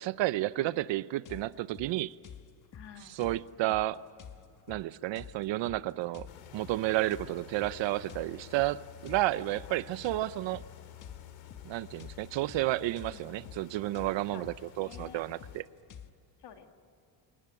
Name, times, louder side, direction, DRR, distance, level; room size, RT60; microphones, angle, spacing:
voice 1, 0.0-2.2 3.0-4.0 4.7-6.3 6.5-10.6 11.6-15.6, right 16 dB, 75° right, 0.7 m, -31 dB
sound 1, 1.3-16.1, left 8 dB, 40° left, 1.4 m, -50 dB
voice 2, 2.7-3.2 9.7-9.8 13.1-13.2 14.3-14.4 14.8-15.2 16.4-16.7, left 8 dB, 65° left, 2.3 m, -50 dB
sound 2, 6.3-15.6, left 11 dB, 80° left, 2.8 m, -51 dB
28.5 x 19.0 x 9.7 m
cardioid pair, 120°, 45 cm